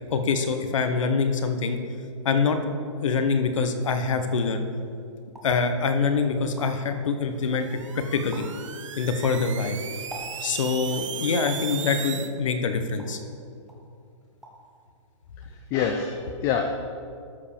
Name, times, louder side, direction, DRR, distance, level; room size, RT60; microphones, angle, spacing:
voice 1, 0.1-1.8 2.2-2.6 3.0-4.6 5.4-8.4 9.0-9.8 10.4-13.2, left 5 dB, 75° left, 7 dB, 1.1 m, -25 dB
sound 1, 5.3-5.6 6.1-6.2 6.4-6.9 7.4-7.9 8.3-8.6 9.0-10.7 11.5-11.7 12.4-13.3 13.7-13.9 14.2-14.7 15.0-15.5, right 1 dB, ahead, 0.8 m, -45 dB
sound 2, 7.5-12.3, right 8 dB, 70° right, 0.8 m, -36 dB
voice 2, 15.5-16.8, left 6 dB, 15° left, 5 dB, 0.3 m, -26 dB
12.5 x 5.2 x 5.1 m, 2.3 s
hypercardioid pair, 160°, 16 cm